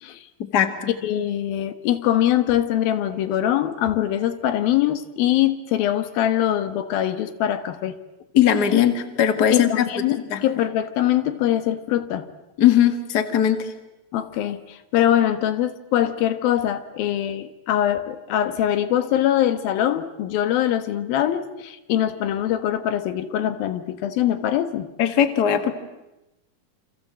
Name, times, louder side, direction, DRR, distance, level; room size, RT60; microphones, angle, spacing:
voice 1, 0.4-0.9 8.3-10.4 12.6-13.7 25.0-25.7, left 9 dB, 35° left, 8 dB, 1.7 m, -19 dB
voice 2, 1.0-8.0 9.5-12.3 14.1-24.9, left 11 dB, 90° left, 11 dB, 3.1 m, -23 dB
28.5 x 27.0 x 7.6 m, 0.96 s
omnidirectional pair, 4.1 m